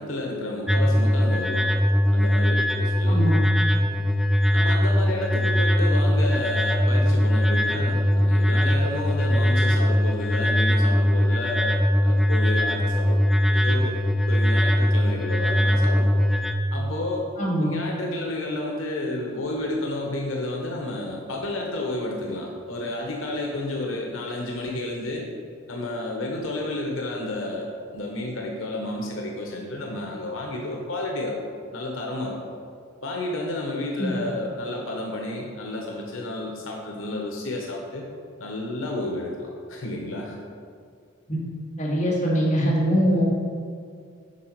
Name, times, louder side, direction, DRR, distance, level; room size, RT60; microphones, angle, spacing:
voice 1, 0.0-1.8 2.1-3.4 4.5-13.9 14.3-16.3 16.7-17.3 17.6-25.2 25.7-31.4 31.7-32.5 33.0-38.1 38.4-40.4, left 2 dB, 85° left, 0 dB, 1.0 m, -31 dB
sound 1, 0.7-16.5, equal, ahead, 0.3 m, -21 dB
voice 2, 3.1-3.4 17.4-17.7 34.0-34.1 41.3-41.4 41.8-43.2, equal, 40° left, -6 dB, 2.2 m, -22 dB
8.3 x 5.8 x 4.6 m, 2.3 s
head